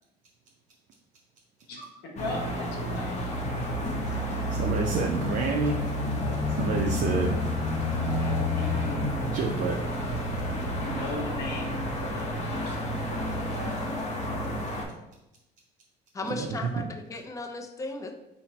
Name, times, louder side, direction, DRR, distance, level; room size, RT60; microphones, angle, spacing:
voice 1, 1.7-3.2 8.2-9.4 10.5-12.8, left 2 dB, 70° left, 0 dB, 1.1 m, -38 dB
sound 1, 2.2-14.8, left 1 dB, 40° left, 0.7 m, -30 dB
voice 2, 4.5-5.9 6.5-7.4 9.3-9.8 16.3-16.5, right 4 dB, 45° right, 2 dB, 0.4 m, -28 dB
voice 3, 16.1-18.1, left 2 dB, 20° left, 4 dB, 0.4 m, -36 dB
4.2 x 2.1 x 4.1 m, 0.92 s
cardioid pair, 140°, 18 cm